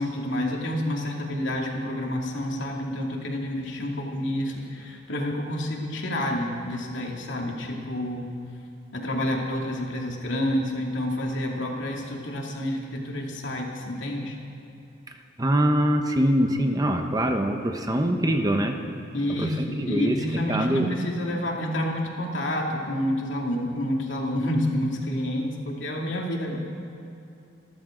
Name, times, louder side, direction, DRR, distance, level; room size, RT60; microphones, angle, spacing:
voice 1, 0.0-8.2 8.9-14.3 19.1-26.6, left 1 dB, 85° left, -1 dB, 2.6 m, -29 dB
voice 2, 15.4-18.8 19.3-20.9, equal, 20° right, 4 dB, 1.0 m, -24 dB
27.0 x 14.0 x 3.9 m, 2.7 s
head